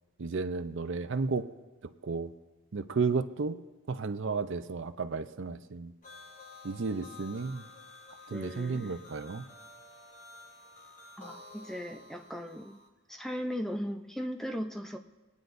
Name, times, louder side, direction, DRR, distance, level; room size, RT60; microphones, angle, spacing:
voice 1, 0.2-1.5 1.8-2.3 2.7-3.6 3.9-5.9 6.6-7.7 8.3-9.5, right 4 dB, 55° right, 10 dB, 0.5 m, -33 dB
sound 1, 6.0-12.9, left 3 dB, 35° left, 1.3 m, -51 dB
voice 2, 8.3-9.0 11.2-12.8 13.1-15.0, equal, ahead, 5 dB, 0.5 m, -37 dB
23.0 x 9.5 x 2.6 m, 1.1 s
head